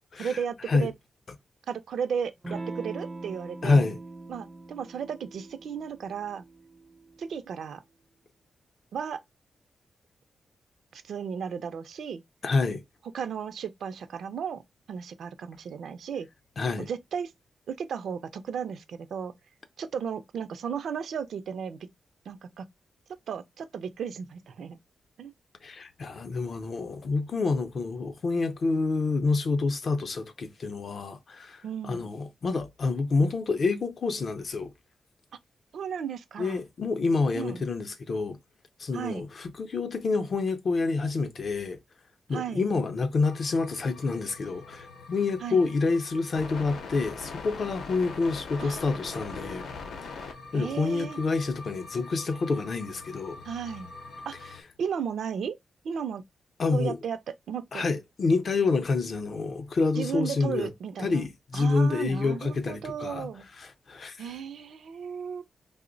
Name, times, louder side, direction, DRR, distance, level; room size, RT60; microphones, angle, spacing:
voice 1, 0.2-0.9 1.7-3.8 4.3-6.4 7.2-7.8 8.9-9.2 10.9-12.2 13.1-14.6 14.9-16.3 16.8-17.3 17.7-19.3 19.8-21.8 22.3-22.7 23.3-24.8 25.2-25.3 31.6-32.1 35.7-36.6 37.3-37.6 38.9-39.3 42.3-42.6 45.4-45.6 48.6-49.7 50.5-51.2 53.4-53.9 54.3-54.5 54.8-55.6 55.8-56.2 56.7-57.2 57.5-57.8 60.0-61.3 61.5-63.5 64.2-65.4, right 7 dB, 75° right, 0.4 m, -34 dB
Electric guitar / Strum, 2.4-7.6, right 2 dB, 15° right, 0.4 m, -42 dB
voice 2, 3.6-4.0 12.4-12.8 16.6-16.9 25.6-34.7 36.4-38.4 38.8-41.8 42.3-49.7 50.5-53.4 56.6-57.0 57.7-60.7 61.0-63.3 63.6-64.2, left 3 dB, 45° left, 0.5 m, -28 dB
sound 1, 43.2-54.6, left 4 dB, 85° left, 0.7 m, -42 dB
2.9 x 2.0 x 3.8 m
wide cardioid pair, 145°, 0 cm